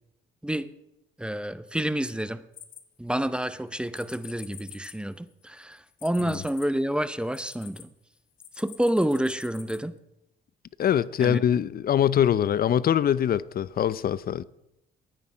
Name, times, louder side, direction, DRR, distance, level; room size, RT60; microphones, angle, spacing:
voice 1, 1.2-2.4 3.0-7.9 8.5-10.0 11.2-11.4, right 1 dB, 5° right, 0.7 m, -29 dB
sound 1, 2.5-3.4 3.9-7.8 8.4-9.8, left 10 dB, 75° left, 1.2 m, -47 dB
voice 2, 10.8-14.4, left 9 dB, 50° left, 0.5 m, -23 dB
13.0 x 9.5 x 5.0 m
cardioid pair, 90°, 20 cm